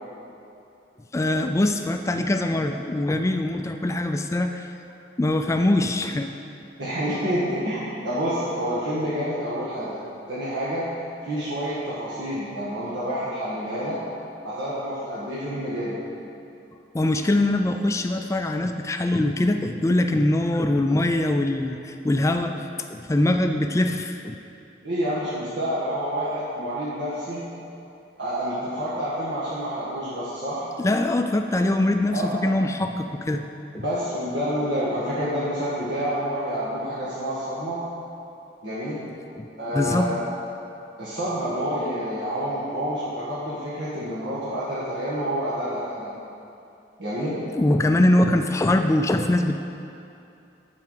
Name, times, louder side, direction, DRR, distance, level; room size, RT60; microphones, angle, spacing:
voice 1, 1.1-4.7 5.2-6.3 16.9-24.4 30.8-33.4 33.7-33.8 39.4-39.5 39.7-40.1 47.6-49.6, left 1 dB, 15° left, 6 dB, 0.3 m, -23 dB
voice 2, 6.8-10.0 10.3-10.9 11.2-14.0 14.4-16.0 24.8-27.5 28.2-30.6 32.1-32.4 33.8-37.8 38.6-39.0 39.6-40.2 41.0-46.2 47.0-47.4, equal, 80° right, -10 dB, 1.8 m, -28 dB
11.5 x 4.7 x 6.6 m, 2.7 s
head